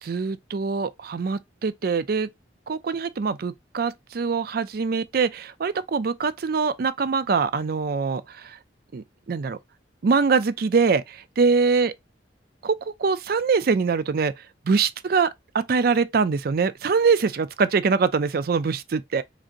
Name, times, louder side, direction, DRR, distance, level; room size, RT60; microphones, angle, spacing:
voice 1, 0.0-2.3 2.7-8.6 8.9-9.6 10.0-11.9 12.6-14.3 14.7-15.3 15.5-19.2, right 5 dB, 55° right, 0.4 m, -23 dB
5.0 x 2.8 x 2.5 m
head